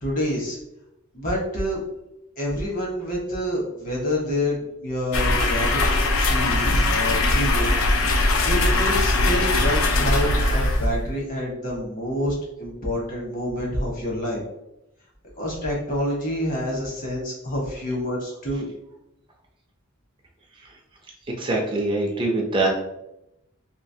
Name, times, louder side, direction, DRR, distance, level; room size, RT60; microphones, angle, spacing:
voice 1, 0.0-0.6 1.1-1.8 2.4-7.8 8.4-14.4 15.4-18.7, equal, 40° left, -2 dB, 1.1 m, -27 dB
sound 1, 5.1-11.2, left 2 dB, 90° left, 0.4 m, -21 dB
voice 2, 21.3-22.7, right 2 dB, 25° right, 0 dB, 0.4 m, -23 dB
3.1 x 2.9 x 2.7 m, 0.87 s
head